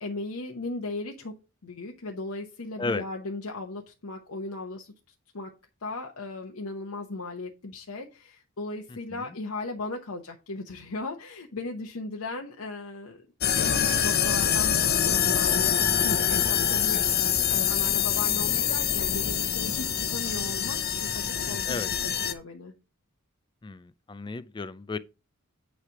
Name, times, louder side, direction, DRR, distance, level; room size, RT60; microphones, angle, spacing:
voice 1, 0.0-1.3 1.6-4.9 5.3-5.5 5.8-13.2 13.5-15.7 16.0-17.0 17.4-21.8 22.2-22.7, left 2 dB, 90° left, 1.0 m, -37 dB
sound 1, 13.4-22.3, left 9 dB, 45° left, 0.8 m, -25 dB
voice 2, 23.6-25.0, left 3 dB, 20° left, 0.3 m, -33 dB
9.6 x 3.3 x 5.9 m
head